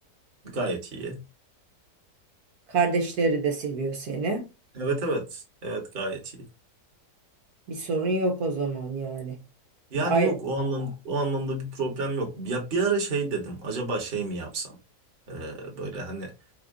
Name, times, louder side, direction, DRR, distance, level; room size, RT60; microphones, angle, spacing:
voice 1, 0.4-1.2 4.7-6.5 9.9-14.8 15.3-16.3, right 3 dB, 30° right, 1.2 m, -30 dB
voice 2, 2.7-4.5 7.7-9.4 10.0-10.3, right 3 dB, 65° right, 1.4 m, -26 dB
4.5 x 2.4 x 3.7 m
omnidirectional pair, 1.8 m